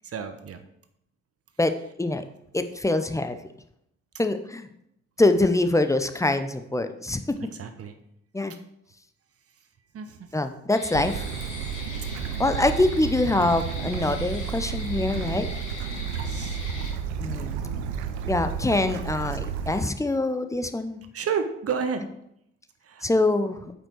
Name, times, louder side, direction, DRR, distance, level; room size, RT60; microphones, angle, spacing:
voice 1, 0.0-0.6 7.4-8.0 9.9-10.4 16.1-16.6 21.1-22.0 22.8-23.1, right 6 dB, 40° right, 7 dB, 1.1 m, -31 dB
voice 2, 2.5-3.4 4.2-4.7 5.2-7.2 8.3-8.5 10.3-11.2 12.4-15.5 17.2-17.6 18.3-21.0 23.0-23.7, left 2 dB, 10° left, 9 dB, 0.7 m, -24 dB
sound 1, 10.7-16.9, left 2 dB, 55° left, 2.8 m, -41 dB
Bird / Stream, 10.9-19.9, right 7 dB, 70° right, 0.7 m, -32 dB
8.8 x 5.5 x 4.6 m, 0.76 s
figure-of-eight pair, 45°, 35 cm